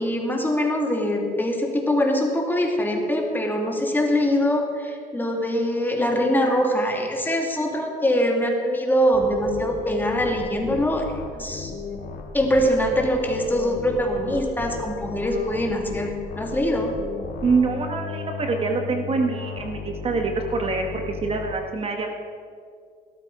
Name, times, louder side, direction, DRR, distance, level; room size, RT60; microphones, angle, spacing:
voice 1, 0.0-11.1 11.3-11.7 12.3-17.0, equal, 10° left, 1 dB, 2.2 m, -23 dB
sound 1, 9.1-21.5, left 5 dB, 60° left, 2.4 m, -36 dB
voice 2, 17.4-22.1, right 4 dB, 35° right, 4 dB, 1.4 m, -25 dB
17.0 x 13.0 x 4.7 m, 2.2 s
cardioid pair, 110°, 17 cm